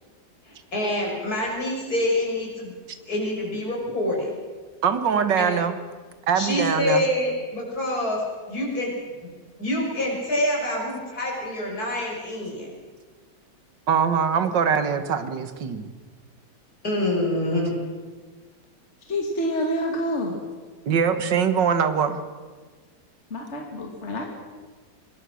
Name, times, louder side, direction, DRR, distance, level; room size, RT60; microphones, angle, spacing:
voice 1, 0.5-2.7 3.1-4.3 5.4-5.5 6.3-8.2 8.5-8.9 9.2-9.3 9.6-12.7 16.8-17.8, left 1 dB, 55° left, -2 dB, 6.7 m, -26 dB
voice 2, 4.8-5.7 6.3-7.0 13.9-15.9 20.9-22.2, right 7 dB, 80° right, 10 dB, 2.0 m, -22 dB
voice 3, 19.1-20.5 23.3-24.3, equal, 40° left, 0 dB, 2.7 m, -27 dB
24.5 x 19.5 x 6.4 m, 1.4 s
omnidirectional pair, 1.9 m